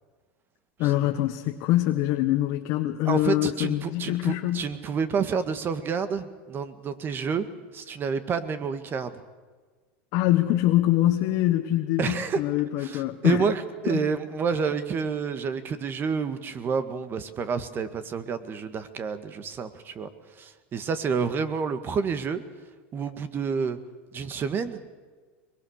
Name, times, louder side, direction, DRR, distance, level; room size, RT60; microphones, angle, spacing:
voice 1, 0.8-4.7 10.1-13.5 13.9-14.1, left 14 dB, 55° left, 3 dB, 1.4 m, -24 dB
voice 2, 3.1-7.5 7.7-9.2 12.0-12.4 12.8-20.1 20.4-22.4 22.9-23.8 24.1-24.8, right 6 dB, 30° right, 11 dB, 1.8 m, -29 dB
22.5 x 22.0 x 6.6 m, 1.4 s
supercardioid pair, 110°, 7 cm